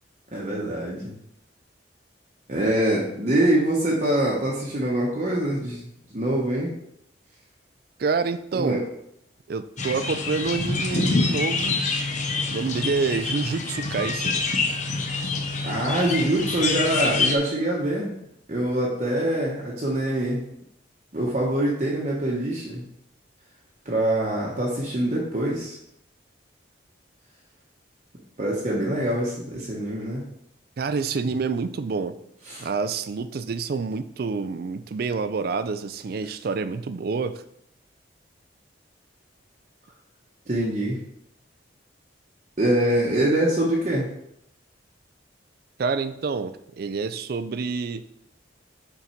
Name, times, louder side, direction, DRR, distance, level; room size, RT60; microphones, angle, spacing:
voice 1, 0.3-1.1 2.5-5.8 6.1-6.7 8.5-8.8 15.6-18.2 18.5-20.4 21.1-22.9 23.8-25.8 28.4-30.3 32.5-32.7 40.5-41.0 42.6-44.1, right 1 dB, 40° right, -4 dB, 0.9 m, -24 dB
voice 2, 8.0-8.8 9.5-11.8 12.5-14.4 30.8-32.2 32.6-37.4 45.8-48.0, right 4 dB, 55° right, 11 dB, 0.4 m, -27 dB
sound 1, 9.8-17.4, left 3 dB, 40° left, 0.7 m, -26 dB
5.7 x 4.0 x 4.4 m, 0.74 s
head